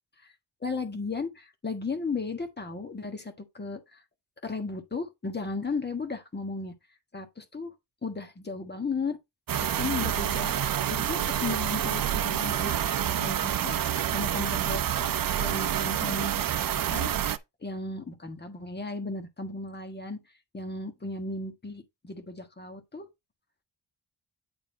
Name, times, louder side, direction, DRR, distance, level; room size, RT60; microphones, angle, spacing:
voice 1, 0.6-4.0 4.4-6.7 7.1-7.7 8.0-9.2 9.6-12.7 13.2-13.8 14.1-17.1 17.6-20.2 20.5-23.1, left 3 dB, 25° left, 1.4 m, -35 dB
sound 1, 9.5-17.4, right 10 dB, 55° right, 0.6 m, -28 dB
9.0 x 4.0 x 3.8 m
wide cardioid pair, 120°, 42 cm